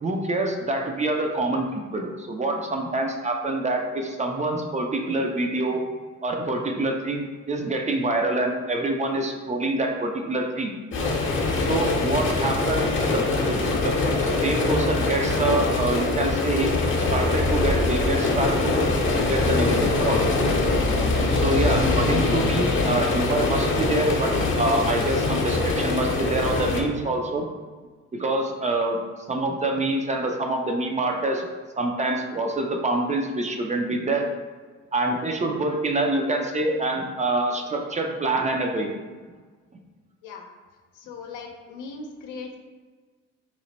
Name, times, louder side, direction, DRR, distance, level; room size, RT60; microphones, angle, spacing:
voice 1, 0.0-5.8 6.2-10.7 11.7-14.0 14.2-20.2 21.3-27.5 28.1-29.0 29.3-31.5 31.8-34.3 34.9-38.9, right 2 dB, 25° right, 2 dB, 0.4 m, -26 dB
sound 1, 10.9-26.8, left 3 dB, 40° left, 0.7 m, -23 dB
voice 2, 40.9-42.6, left 4 dB, 90° left, 3 dB, 0.6 m, -38 dB
3.0 x 2.1 x 4.0 m, 1.5 s
cardioid pair, 90°, 30 cm